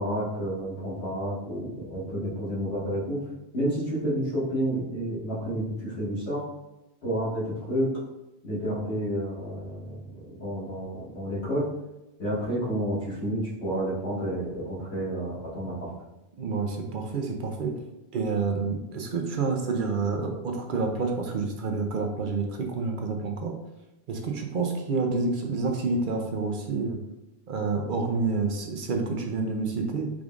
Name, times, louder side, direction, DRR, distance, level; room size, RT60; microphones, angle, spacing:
voice 1, 0.0-3.2 3.5-6.4 7.0-7.9 8.4-11.7 12.2-15.9, equal, 85° left, -8 dB, 2.0 m, -30 dB
voice 2, 16.4-17.7 18.1-23.5 24.1-27.0 27.5-30.1, right 4 dB, 60° right, 3 dB, 0.8 m, -28 dB
5.0 x 3.6 x 2.4 m, 0.95 s
omnidirectional pair, 1.0 m